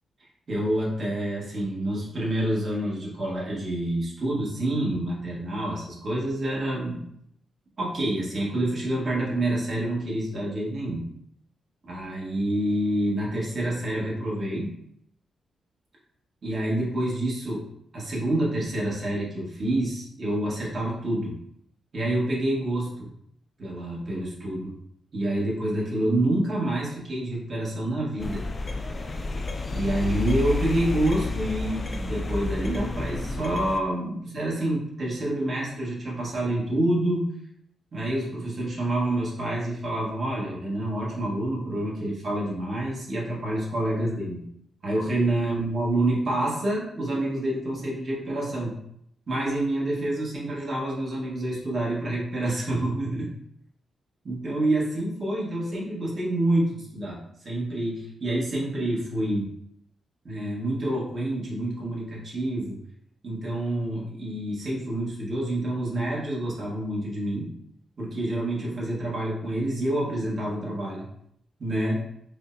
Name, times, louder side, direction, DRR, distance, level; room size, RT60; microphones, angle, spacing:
voice 1, 0.5-7.0 7.8-11.0 11.9-14.7 16.4-17.6 17.9-21.4 21.9-23.1 23.6-24.7 25.1-28.4 29.7-37.3 37.9-44.4 44.8-48.8 49.3-53.3 54.2-59.5 60.2-62.8 63.2-67.5 68.0-71.1 71.6-72.0, right 1 dB, 40° right, -5 dB, 1.3 m, -27 dB
sound 1, 28.2-33.8, left 3 dB, 30° left, 0.3 m, -30 dB
4.9 x 2.1 x 2.6 m, 0.73 s
wide cardioid pair, 130°, 0 cm